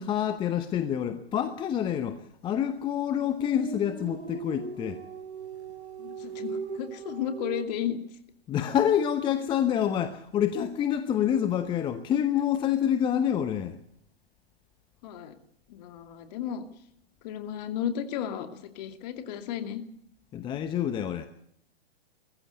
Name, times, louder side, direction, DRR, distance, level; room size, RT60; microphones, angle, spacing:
voice 1, 0.0-5.0 8.5-13.8 20.3-21.3, left 9 dB, 15° left, 0.9 m, -27 dB
sound 1, 2.9-7.6, right 5 dB, 85° right, 3.0 m, -39 dB
voice 2, 6.0-8.0 15.0-15.3 15.7-16.7 17.2-18.5 18.7-19.8, left 9 dB, 40° left, 2.5 m, -33 dB
21.5 x 15.0 x 8.2 m
hypercardioid pair, 130°, 33 cm